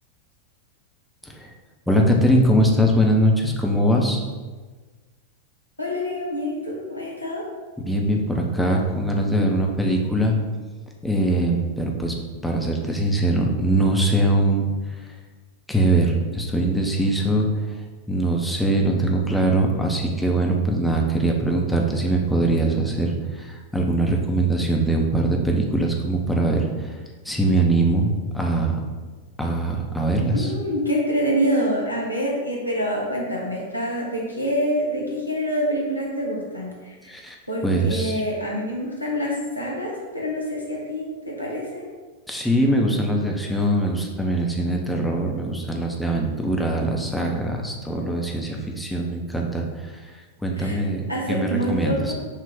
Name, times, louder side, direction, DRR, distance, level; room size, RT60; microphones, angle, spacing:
voice 1, 1.2-1.5 1.9-4.2 7.8-10.4 11.0-12.1 12.4-15.1 15.7-17.8 18.1-27.0 27.2-28.8 29.4-30.5 37.1-37.4 37.6-38.2 42.3-52.1, right 1 dB, 5° left, 0 dB, 0.7 m, -22 dB
voice 2, 5.8-7.4 30.3-37.1 37.5-41.9 50.6-50.8 51.1-52.1, equal, 85° left, -3 dB, 0.8 m, -26 dB
5.6 x 2.4 x 3.5 m, 1.4 s
figure-of-eight pair, 90°, 0 cm